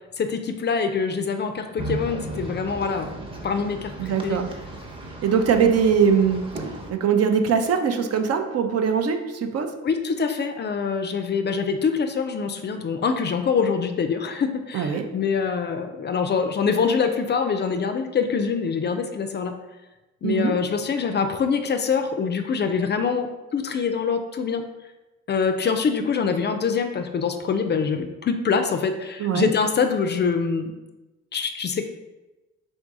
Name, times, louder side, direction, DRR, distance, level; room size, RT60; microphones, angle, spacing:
voice 1, 0.2-3.1 3.4-4.4 9.8-19.5 20.2-24.7 25.3-30.7 31.3-31.8, left 5 dB, 35° left, 7 dB, 0.4 m, -24 dB
sound 1, 1.8-6.9, right 2 dB, 15° right, 0.8 m, -35 dB
voice 2, 4.0-4.5 5.2-6.4 6.9-9.7 14.7-15.0 20.2-20.5 29.2-29.5, right 6 dB, 55° right, 6 dB, 0.5 m, -21 dB
3.6 x 2.6 x 4.6 m, 1.1 s
cardioid pair, 90°, 30 cm